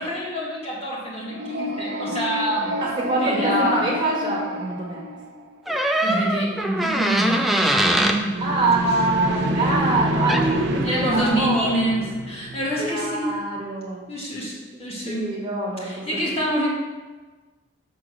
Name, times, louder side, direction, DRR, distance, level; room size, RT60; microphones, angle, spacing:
voice 1, 0.0-2.7 3.2-3.9 6.0-8.3 10.8-13.4 14.1-15.3 15.8-16.7, equal, 30° left, -6 dB, 1.4 m, -26 dB
sound 1, 1.2-5.5 8.1-13.1, right 1 dB, 55° right, 0.5 m, -28 dB
voice 2, 3.0-5.1 8.4-11.7 12.8-14.0 15.0-16.2, right 2 dB, 25° right, -4 dB, 1.4 m, -25 dB
sound 2, 5.7-8.2 10.3-10.5, right 1 dB, ahead, 0.3 m, -22 dB
6.4 x 3.8 x 6.1 m, 1.3 s
head